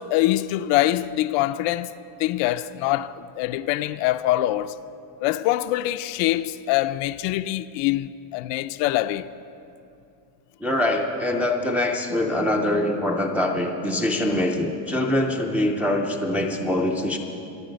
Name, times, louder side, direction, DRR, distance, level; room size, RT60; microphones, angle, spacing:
voice 1, 0.0-1.9 2.2-4.8 5.2-9.3, left 15 dB, 65° left, 0.5 m, -24 dB
voice 2, 10.6-17.2, left 1 dB, 5° right, 0.4 m, -24 dB
25.5 x 9.2 x 5.2 m
cardioid pair, 180°, 47 cm